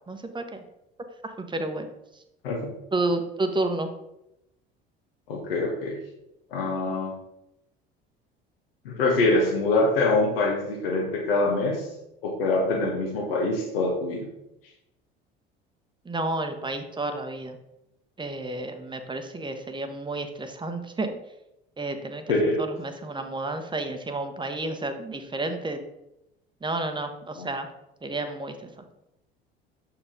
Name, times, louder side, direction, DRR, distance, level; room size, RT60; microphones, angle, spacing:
voice 1, 0.1-0.6 1.2-1.9 2.9-3.9 16.0-17.6 18.2-21.1 21.8-22.2 22.6-25.8 26.6-27.7 28.0-28.7, right 2 dB, 15° right, 7 dB, 0.9 m, -31 dB
voice 2, 5.3-6.0 6.5-7.2 8.8-11.9 12.2-14.3 22.3-22.6 27.4-27.5, left 2 dB, 75° left, -1 dB, 1.3 m, -24 dB
6.7 x 4.3 x 3.8 m, 0.88 s
figure-of-eight pair, 60°, 29 cm